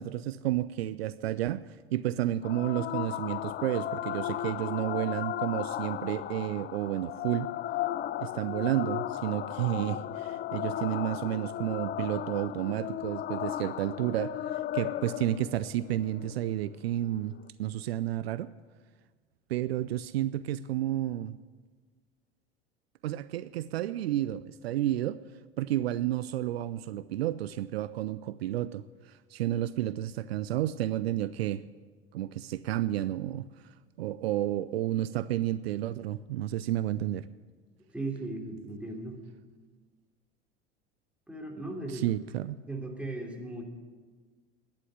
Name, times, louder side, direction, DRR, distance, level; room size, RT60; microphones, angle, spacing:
voice 1, 0.0-1.6 1.9-7.5 8.2-18.5 19.5-21.4 23.0-25.2 25.6-31.6 32.1-33.5 34.0-37.3 41.9-42.6, right 13 dB, 75° right, 16 dB, 0.5 m, -31 dB
sound 1, 2.4-17.4, left 12 dB, 35° left, 0.5 m, -35 dB
voice 2, 37.9-39.2 41.3-42.2 42.7-43.6, right 2 dB, 5° right, 0 dB, 3.0 m, -37 dB
11.5 x 10.0 x 9.9 m, 1.5 s
figure-of-eight pair, 75°, 31 cm